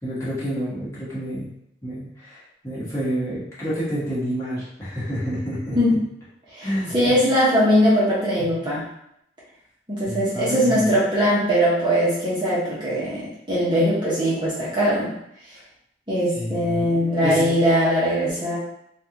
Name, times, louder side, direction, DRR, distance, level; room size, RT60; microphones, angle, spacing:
voice 1, 0.0-1.5 1.8-5.8 6.6-7.1 8.4-8.5 10.0-10.8 16.3-17.5, equal, 15° left, -10 dB, 1.3 m, -29 dB
voice 2, 6.5-8.8 9.9-15.1 16.1-18.6, equal, 25° right, -8 dB, 0.9 m, -21 dB
3.8 x 2.4 x 2.9 m, 0.76 s
head